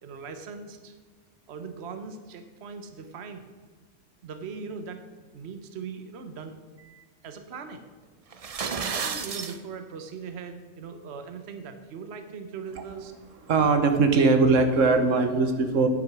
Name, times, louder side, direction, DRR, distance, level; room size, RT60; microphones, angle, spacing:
voice 1, 0.0-0.9 1.5-3.5 4.2-5.0 5.3-6.5 7.2-7.9 8.6-13.1, right 5 dB, 60° right, 8 dB, 1.1 m, -40 dB
sound 1, 8.3-9.6, right 5 dB, 40° right, 0.5 m, -31 dB
voice 2, 13.5-15.9, right 4 dB, 90° right, 7 dB, 1.5 m, -21 dB
9.6 x 9.2 x 6.1 m, 1.4 s
omnidirectional pair, 1.3 m